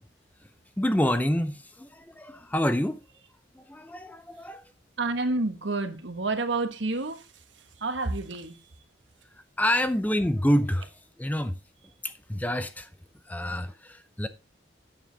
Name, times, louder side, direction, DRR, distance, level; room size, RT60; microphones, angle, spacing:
voice 1, 0.8-3.0 3.6-4.6 9.6-10.9 11.2-11.6 12.0-12.9 13.3-14.3, left 1 dB, 10° left, 0.6 m, -27 dB
voice 2, 5.0-7.3 7.8-8.6, right 3 dB, 75° right, 1.4 m, -29 dB
8.8 x 7.4 x 3.9 m
head